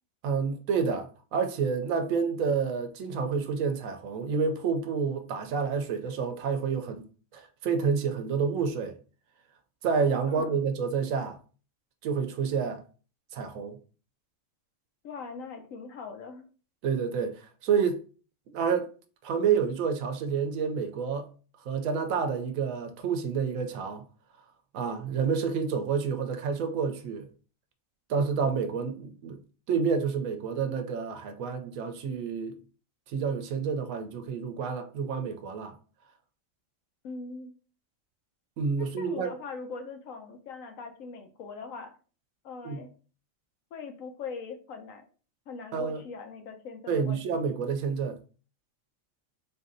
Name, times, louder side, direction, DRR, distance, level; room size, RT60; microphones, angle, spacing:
voice 1, 0.2-7.0 7.3-8.9 9.8-11.4 12.0-12.8 13.3-13.8 16.8-18.0 18.5-18.9 19.2-21.3 21.6-24.0 24.7-27.3 28.1-29.4 29.7-32.6 33.1-35.7 38.6-39.3 42.6-42.8 45.7-46.0 46.9-48.2, right 6 dB, 80° right, 1.1 m, -29 dB
voice 2, 15.0-16.4 37.0-37.5 38.8-42.0 42.4-42.9 43.7-45.0 45.5-47.2, left 4 dB, 75° left, 1.1 m, -41 dB
4.1 x 2.7 x 3.7 m
omnidirectional pair, 1.4 m